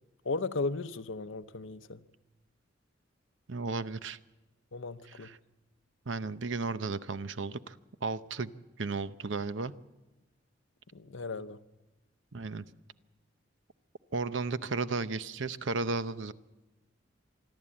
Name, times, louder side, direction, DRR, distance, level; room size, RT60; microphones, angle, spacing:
voice 1, 0.2-2.0 4.7-5.3 10.9-11.6, left 3 dB, 90° left, 0.8 m, -36 dB
voice 2, 3.5-4.2 5.2-5.4 6.1-7.8 8.0-8.5 8.8-9.7 12.3-12.6 14.1-16.3, right 3 dB, 75° right, 0.8 m, -34 dB
25.5 x 12.5 x 8.6 m
head